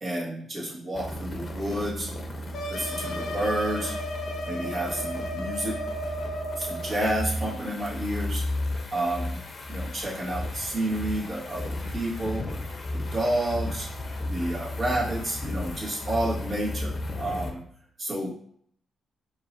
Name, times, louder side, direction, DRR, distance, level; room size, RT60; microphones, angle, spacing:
voice 1, 0.0-2.1 2.7-4.0 4.4-5.8 6.6-8.4 8.9-9.4 9.7-12.5 12.9-13.9 14.2-17.6 18.0-18.3, right 1 dB, 50° right, -5 dB, 1.4 m, -30 dB
sound 1, 0.9-17.5, left 1 dB, 45° left, 0.7 m, -34 dB
sound 2, 2.5-7.0, left 1 dB, 80° left, 0.6 m, -34 dB
4.7 x 2.5 x 2.5 m, 0.64 s
supercardioid pair, 60°, 0 cm